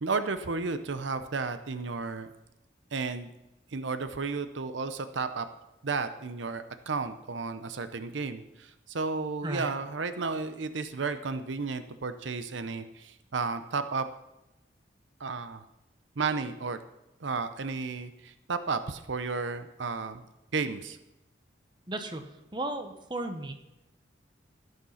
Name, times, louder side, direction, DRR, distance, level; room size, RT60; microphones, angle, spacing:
voice 1, 0.0-2.3 2.9-3.3 3.7-5.5 5.8-14.1 15.2-15.6 16.2-16.8 17.2-20.2 20.5-21.0, right 4 dB, 80° right, 11 dB, 0.7 m, -33 dB
voice 2, 21.9-22.2 22.5-23.5, right 2 dB, 25° right, 6 dB, 1.0 m, -34 dB
15.5 x 6.6 x 5.7 m, 0.92 s
head